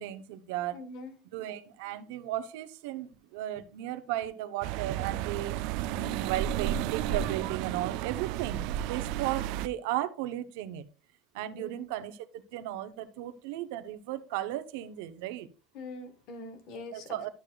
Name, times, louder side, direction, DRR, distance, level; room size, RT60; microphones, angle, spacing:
voice 1, 0.0-0.9 1.3-10.9 11.3-15.5 16.9-17.3, right 13 dB, 70° right, 0.8 m, -35 dB
voice 2, 0.7-1.1 11.5-11.8 15.7-17.3, left 2 dB, 45° left, 1.2 m, -43 dB
sound 1, 4.6-9.7, right 12 dB, 55° right, 0.3 m, -32 dB
11.5 x 6.7 x 2.3 m
cardioid pair, 175°, 0 cm